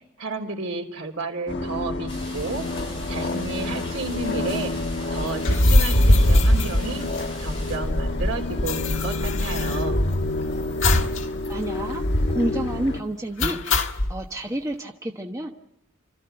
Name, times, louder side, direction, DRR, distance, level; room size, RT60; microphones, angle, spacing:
voice 1, 0.2-2.6 3.1-4.7 5.1-7.0 7.4-10.0, right 3 dB, 75° right, 3 dB, 3.3 m, -32 dB
sound 1, 1.5-13.0, left 2 dB, 55° left, 1.3 m, -29 dB
sound 2, 2.1-7.8, left 1 dB, 25° left, 7.4 m, -41 dB
sound 3, 5.4-7.6 7.9-8.0 8.2-10.3 10.8-11.2 11.5-11.6 12.0-12.5 13.4-14.1, left 1 dB, 75° left, 1.5 m, -20 dB
voice 2, 11.5-12.0 12.3-13.6 14.1-15.5, right 1 dB, 15° right, 2 dB, 1.1 m, -29 dB
29.0 x 14.0 x 7.9 m, 0.83 s
head